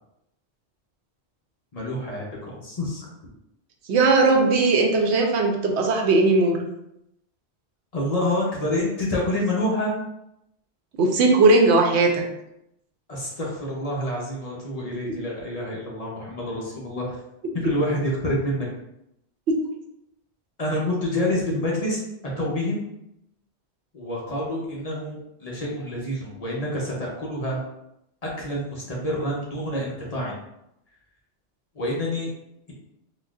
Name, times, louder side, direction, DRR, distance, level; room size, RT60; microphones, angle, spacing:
voice 1, 1.7-3.1 7.9-9.9 13.1-17.2 17.5-18.7 20.6-22.0 22.4-22.8 23.9-27.6 28.4-30.3 31.7-32.3, left 1 dB, 40° left, -4 dB, 0.7 m, -27 dB
voice 2, 3.9-6.6 11.0-12.2 15.1-15.2 19.5-19.6, right 3 dB, 90° right, 2 dB, 0.9 m, -18 dB
3.8 x 2.3 x 2.3 m, 0.81 s
omnidirectional pair, 1.1 m